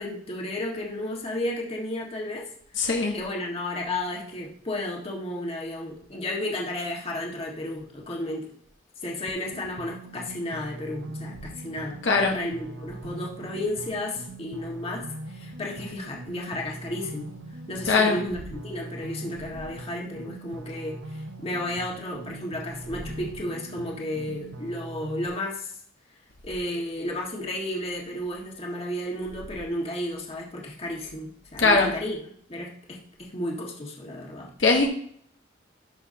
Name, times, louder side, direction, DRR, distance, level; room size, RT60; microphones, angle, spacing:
voice 1, 0.0-2.5 3.1-8.4 9.0-12.0 12.3-17.3 17.7-25.7 26.4-32.2 32.5-34.5, left 1 dB, 30° left, -2 dB, 1.7 m, -33 dB
voice 2, 2.7-3.2 12.0-12.4 17.9-18.2 31.6-31.9 34.6-34.9, left 3 dB, 70° left, 1 dB, 1.1 m, -21 dB
sound 1, 9.3-25.3, right 2 dB, 80° right, 0.9 m, -41 dB
11.5 x 5.9 x 2.8 m, 0.62 s
head